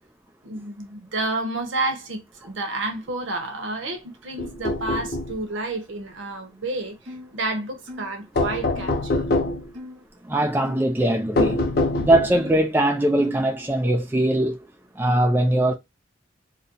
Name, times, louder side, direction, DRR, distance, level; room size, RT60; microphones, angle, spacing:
voice 1, 0.4-9.2, right 2 dB, 75° right, 0.8 m, -30 dB
sound 1, 4.4-5.4 8.4-9.7 11.4-12.5, left 2 dB, 50° left, 0.4 m, -24 dB
sound 2, 7.1-7.3 7.9-8.1 8.8-9.0 9.7-10.0 10.7-10.9 11.5-11.7 12.4-12.6 13.2-13.5, left 2 dB, 40° right, 0.8 m, -39 dB
voice 2, 10.3-11.6 12.0-14.6 15.0-15.7, right 1 dB, 10° right, 0.4 m, -21 dB
2.7 x 2.1 x 3.7 m
head